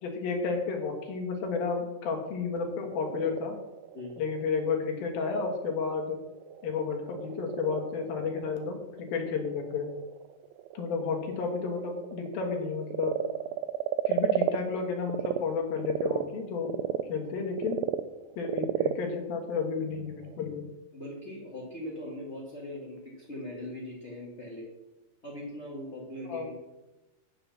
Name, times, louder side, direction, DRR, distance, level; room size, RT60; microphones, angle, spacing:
voice 1, 0.0-3.6 4.2-6.2 6.6-9.9 10.7-13.2 14.1-16.7 17.0-17.8 18.4-20.6 26.3-26.5, left 5 dB, 90° left, 2 dB, 3.4 m, -32 dB
Frog, 2.5-15.4 15.8-20.4, right 13 dB, 90° right, 2.3 m, -34 dB
voice 2, 20.9-24.7 25.2-26.5, left 1 dB, 25° left, -4 dB, 1.6 m, -40 dB
8.9 x 6.8 x 7.1 m, 1.0 s
omnidirectional pair, 4.0 m